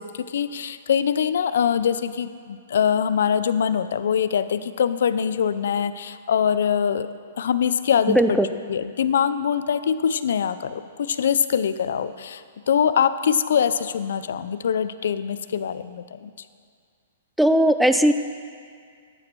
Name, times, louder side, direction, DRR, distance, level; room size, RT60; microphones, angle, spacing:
voice 1, 0.0-7.1 7.4-8.4 8.7-12.4 12.7-16.3, left 8 dB, 70° left, 13 dB, 0.5 m, -23 dB
voice 2, 8.1-8.5 17.4-18.1, equal, ahead, 9 dB, 0.3 m, -18 dB
12.0 x 8.8 x 4.6 m, 2.1 s
hypercardioid pair, 160°, 0 cm